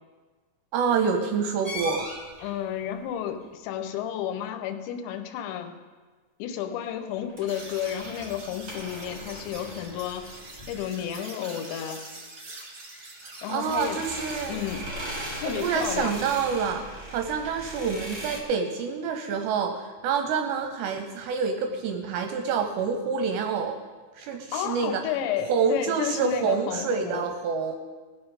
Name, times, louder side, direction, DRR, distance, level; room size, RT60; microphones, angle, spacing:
voice 1, 0.7-2.1 13.5-14.6 15.5-23.8 24.2-25.0 25.5-27.8, right 6 dB, 80° right, 5 dB, 2.7 m, -27 dB
sound 1, 1.6-2.6 7.1-10.9 13.6-18.4, equal, 30° right, 1.3 m, -39 dB
voice 2, 2.4-5.8 6.4-10.3 10.7-12.0 13.4-14.0 14.5-14.8 15.4-16.2 24.5-27.3, left 10 dB, 80° left, 6 dB, 3.0 m, -32 dB
sound 2, 7.5-16.4, right 2 dB, 60° right, 0.9 m, -44 dB
18.0 x 7.2 x 5.3 m, 1.4 s
omnidirectional pair, 5.4 m